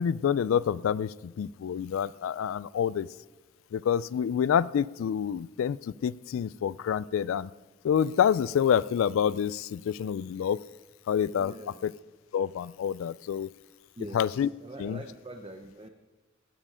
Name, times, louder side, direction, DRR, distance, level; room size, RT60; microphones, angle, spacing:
voice 1, 0.0-3.1 3.7-7.5 7.8-10.6 11.1-11.5 11.8-11.9 12.3-13.5 14.1-14.5 14.8-15.0, left 8 dB, 75° left, 20 dB, 0.3 m, -27 dB
voice 2, 11.4-11.8 13.9-15.9, right 1 dB, 25° right, 5 dB, 0.7 m, -44 dB
16.0 x 9.9 x 5.0 m, 1.2 s
head